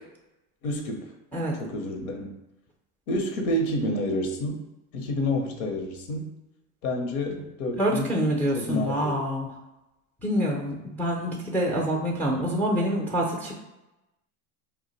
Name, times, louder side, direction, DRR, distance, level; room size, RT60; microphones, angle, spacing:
voice 1, 0.6-1.1 1.6-2.3 3.1-4.7 4.9-6.4 6.8-8.1 8.5-9.2, left 1 dB, 80° left, 3 dB, 0.8 m, -29 dB
voice 2, 7.8-9.5 10.2-13.5, equal, 5° left, -1 dB, 0.4 m, -26 dB
2.5 x 2.1 x 3.9 m, 0.97 s
supercardioid pair, 100°, 42 cm